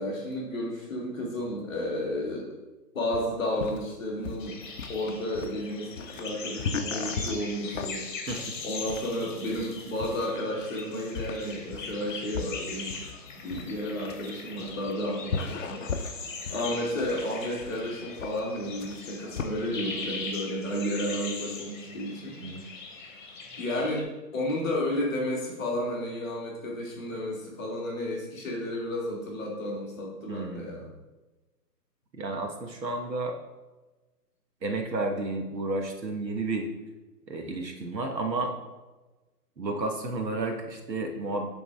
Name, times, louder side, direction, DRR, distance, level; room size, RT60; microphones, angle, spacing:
voice 1, 0.0-2.5 2.9-4.6 4.9-8.1 8.6-13.0 13.4-15.9 16.5-22.4 23.6-24.1 24.3-30.9 32.2-32.3, left 1 dB, 10° left, -12 dB, 0.9 m, -32 dB
sound 1, 3.1-19.5, left 5 dB, 50° left, 0.5 m, -37 dB
sound 2, 4.4-24.0, left 4 dB, 30° left, 1.0 m, -40 dB
voice 2, 30.3-30.9 32.1-33.3 34.6-36.7 37.3-38.5 39.6-41.5, right 2 dB, 90° right, 3 dB, 1.5 m, -31 dB
7.3 x 3.9 x 4.7 m, 1.1 s
hypercardioid pair, 160°, 49 cm